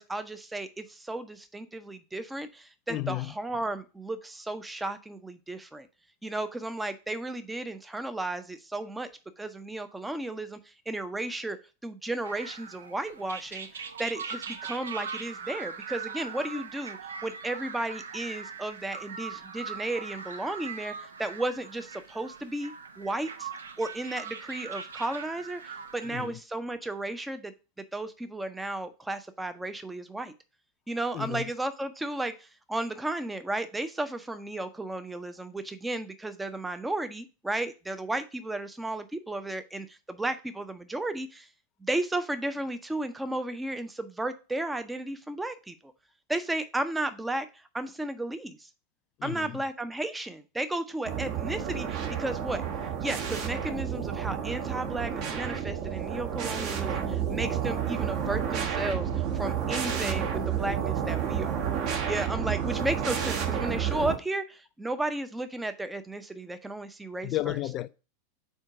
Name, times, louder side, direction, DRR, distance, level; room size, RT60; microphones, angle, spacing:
voice 1, 0.0-5.9 6.2-9.1 9.4-10.6 10.9-11.6 11.8-23.5 23.8-27.5 27.9-30.3 30.9-41.5 41.8-45.9 46.3-48.7 49.2-52.6 53.0-61.6 62.1-67.6, right 2 dB, 5° right, 0.6 m, -34 dB
voice 2, 2.9-3.3 26.0-26.4 31.1-31.5 49.2-49.6 55.6-55.8 67.2-67.9, left 15 dB, 35° left, 0.3 m, -33 dB
sound 1, 12.2-26.3, right 6 dB, 70° right, 0.5 m, -41 dB
sound 2, 51.0-64.2, right 8 dB, 40° right, 1.0 m, -30 dB
4.5 x 4.3 x 4.8 m
figure-of-eight pair, 90°, 0 cm